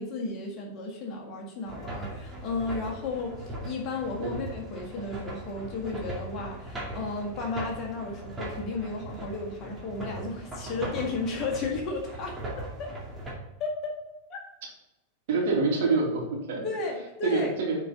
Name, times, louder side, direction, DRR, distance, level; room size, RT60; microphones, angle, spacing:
voice 1, 0.0-12.3 12.8-12.9 13.6-13.9 14.3-14.4 16.6-17.5, left 3 dB, 35° left, 0 dB, 1.7 m, -33 dB
sound 1, 1.7-13.3, right 1 dB, 10° right, 2.3 m, -39 dB
voice 2, 15.3-16.6 17.2-17.8, right 3 dB, 55° right, -2 dB, 2.5 m, -26 dB
9.4 x 4.4 x 3.9 m, 0.98 s
figure-of-eight pair, 90°, 0 cm